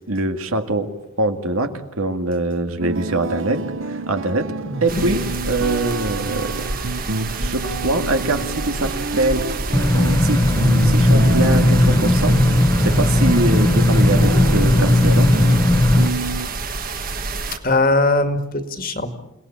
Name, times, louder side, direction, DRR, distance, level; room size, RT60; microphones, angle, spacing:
voice 1, 0.1-4.5 4.8-5.2 5.5-6.5 7.3-9.5 10.2-10.4 10.8-12.4 12.8-15.3, right 2 dB, 80° right, 7 dB, 2.1 m, -23 dB
sound 1, 2.8-16.5, right 3 dB, 60° right, 0.9 m, -29 dB
voice 2, 4.7-5.1 17.5-19.1, left 2 dB, 40° left, 8 dB, 2.1 m, -20 dB
sound 2, 4.9-17.6, right 3 dB, 40° right, 1.6 m, -28 dB
sound 3, 9.7-16.1, left 1 dB, 15° left, 0.9 m, -16 dB
28.5 x 18.0 x 8.6 m, 0.94 s
head